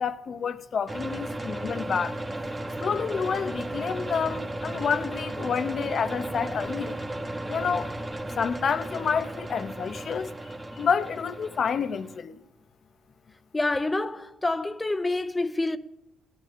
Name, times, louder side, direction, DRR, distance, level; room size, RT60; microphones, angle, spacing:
voice 1, 0.0-2.2 2.8-7.0 7.5-7.9 8.4-10.3 10.8-12.4, left 6 dB, 50° left, 0.8 m, -29 dB
sound 1, 0.9-12.2, right 1 dB, 15° right, 1.1 m, -35 dB
voice 2, 13.5-15.8, left 2 dB, 15° left, 0.6 m, -27 dB
16.5 x 9.6 x 6.8 m
cardioid pair, 90°, 0 cm